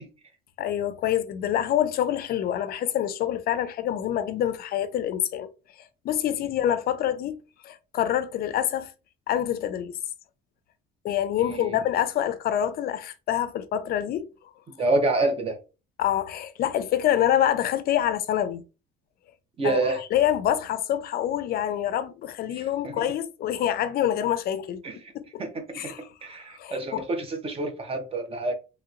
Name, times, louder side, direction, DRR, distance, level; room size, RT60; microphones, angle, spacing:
voice 1, 0.6-5.5 6.0-7.4 7.6-8.9 9.3-9.9 11.0-14.3 16.0-18.6 19.6-24.8 25.1-25.4 25.7-26.3 26.6-27.0, left 11 dB, 50° left, 0.4 m, -26 dB
voice 2, 14.8-15.6 19.6-20.0 22.6-23.0 24.8-25.0 25.4-25.9 26.2-28.5, right 2 dB, 30° right, 0.7 m, -27 dB
3.0 x 2.8 x 2.4 m
cardioid pair, 155°, 21 cm